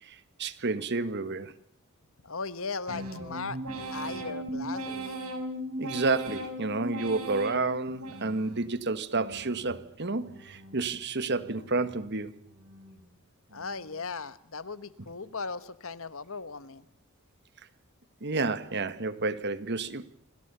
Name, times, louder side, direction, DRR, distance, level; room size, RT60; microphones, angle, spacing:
voice 1, 0.0-1.5 5.8-12.3 18.2-20.1, right 3 dB, 50° right, 1.5 m, -30 dB
voice 2, 2.2-3.6 3.9-5.2 13.5-16.8, left 4 dB, 65° left, 1.4 m, -37 dB
sound 1, 2.9-8.7 9.1-9.8 10.2-10.9 11.3-12.0 12.4-13.0 13.5-14.0, right 1 dB, 80° right, 6.5 m, -39 dB
28.0 x 26.5 x 6.9 m
head